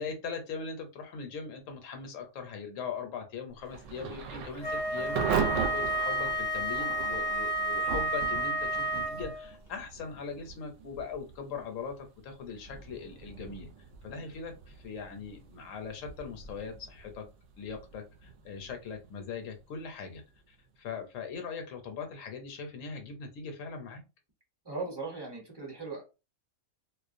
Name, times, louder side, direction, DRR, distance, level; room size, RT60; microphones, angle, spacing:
voice 1, 0.0-13.7 14.0-17.2 17.6-20.2 20.5-24.0, left 5 dB, 75° left, 5 dB, 1.0 m, -40 dB
Thunder / Rain, 3.7-20.4, right 7 dB, 70° right, 0.8 m, -39 dB
Wind instrument woodwind instrument, 4.6-9.5, equal, 45° left, 0.6 m, -31 dB
voice 2, 24.6-26.0, right 3 dB, 25° right, -1 dB, 0.7 m, -38 dB
2.3 x 2.1 x 2.5 m, 0.28 s
omnidirectional pair, 1.4 m